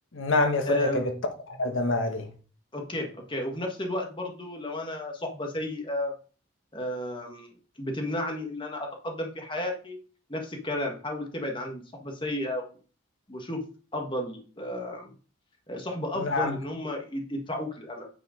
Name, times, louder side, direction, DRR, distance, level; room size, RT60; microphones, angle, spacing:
voice 1, 0.1-1.1 1.5-2.3 16.2-16.6, left 2 dB, 90° left, 1.4 m, -26 dB
voice 2, 0.7-1.0 2.7-6.1 6.7-7.5 7.8-10.0 10.3-12.7 13.3-13.6 13.9-15.1 15.7-18.1, left 1 dB, 25° left, 1.5 m, -33 dB
9.1 x 5.1 x 5.0 m
head